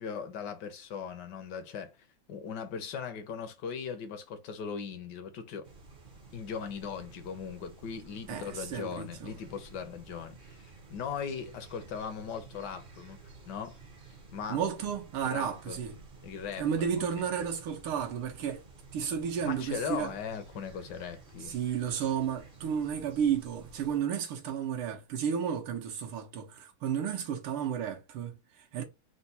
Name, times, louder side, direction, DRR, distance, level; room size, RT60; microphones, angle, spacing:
voice 1, 0.0-2.0 2.3-5.7 6.3-10.6 10.9-13.2 13.5-13.8 14.3-14.6 15.2-15.8 16.2-16.7 19.4-21.5, left 6 dB, 65° left, 1.2 m, -39 dB
sound 1, 5.6-24.0, right 4 dB, 45° right, 0.6 m, -52 dB
voice 2, 8.3-9.3 14.5-16.0 16.6-18.6 18.9-20.1 21.4-28.8, right 8 dB, 85° right, 1.7 m, -32 dB
4.5 x 2.2 x 4.0 m
omnidirectional pair, 2.3 m